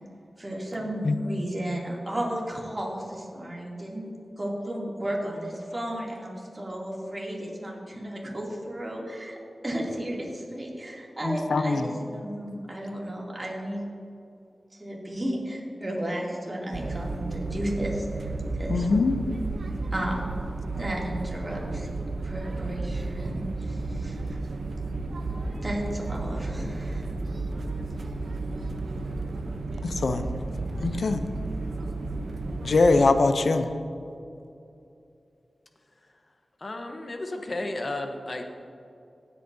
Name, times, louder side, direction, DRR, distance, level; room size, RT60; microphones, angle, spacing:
voice 1, 0.4-4.1 4.4-9.4 9.6-13.8 14.8-18.9 19.9-20.2 20.7-21.9 22.2-23.4 23.7-24.4 25.6-27.0, right 1 dB, 30° right, -3 dB, 2.7 m, -33 dB
voice 2, 11.2-11.9 18.7-19.2 29.8-30.3 30.8-31.2 32.6-33.7, left 3 dB, 80° left, 9 dB, 0.6 m, -22 dB
sound 1, 16.7-33.1, right 3 dB, 80° right, 0.7 m, -33 dB
voice 3, 36.6-38.4, left 2 dB, 50° left, 4 dB, 0.9 m, -33 dB
16.5 x 8.3 x 2.7 m, 2.6 s
cardioid pair, 55°, 0 cm